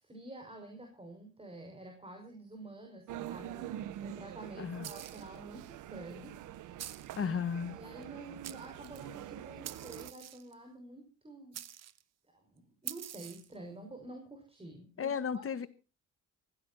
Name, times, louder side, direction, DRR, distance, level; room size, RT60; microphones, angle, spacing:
voice 1, 0.0-6.4 7.1-7.3 7.7-11.6 12.3-15.7, right 2 dB, 20° right, 6.1 m, -49 dB
sound 1, 3.1-10.1, right 12 dB, 80° right, 1.1 m, -45 dB
voice 2, 4.6-4.9 7.2-7.8 15.0-15.7, left 7 dB, 45° left, 1.8 m, -34 dB
sound 2, 4.8-5.4 6.8-7.2 8.0-8.1 8.4-9.1 9.6-10.5 11.5-12.0 12.9-13.5, right 10 dB, 60° right, 1.3 m, -45 dB
24.5 x 15.5 x 2.9 m
cardioid pair, 90°, 30 cm